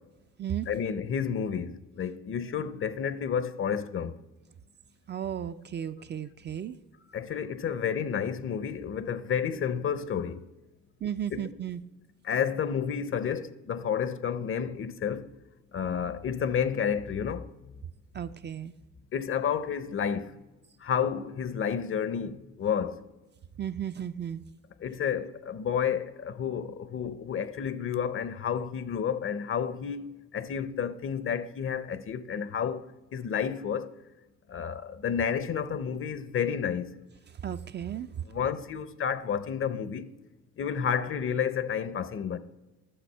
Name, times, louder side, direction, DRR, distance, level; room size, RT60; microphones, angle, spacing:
voice 1, 0.7-4.1 7.1-10.4 11.3-11.5 12.3-15.2 15.7-17.4 19.1-20.3 20.8-23.0 24.8-32.8 33.1-33.9 34.5-36.9 38.3-40.0 40.6-42.4, left 7 dB, 45° left, 0.6 m, -30 dB
voice 2, 5.1-6.8 11.0-11.8 18.1-18.7 23.6-24.4 37.4-38.1, right 9 dB, 35° right, 0.4 m, -34 dB
11.0 x 6.3 x 5.5 m
cardioid pair, 90°, 30 cm